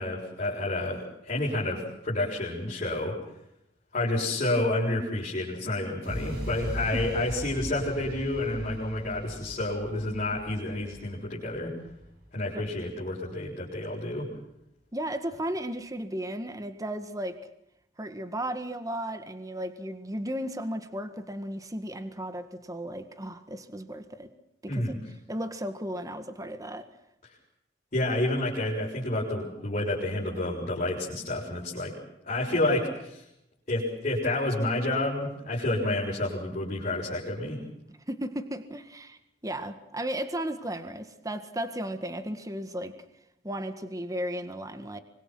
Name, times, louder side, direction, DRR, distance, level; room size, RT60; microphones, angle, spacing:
voice 1, 0.0-3.2 3.9-11.7 12.3-14.3 24.7-25.0 27.9-31.9 32.2-33.2 33.7-37.6, left 1 dB, 40° left, -5 dB, 6.8 m, -29 dB
sound 1, 6.0-14.0, equal, 55° right, 7.5 m, -40 dB
voice 2, 14.9-17.4 18.0-24.3 24.6-25.0 25.3-26.9 38.1-42.9 43.4-45.0, right 1 dB, 20° right, 9 dB, 1.7 m, -35 dB
25.0 x 23.5 x 6.3 m, 0.82 s
head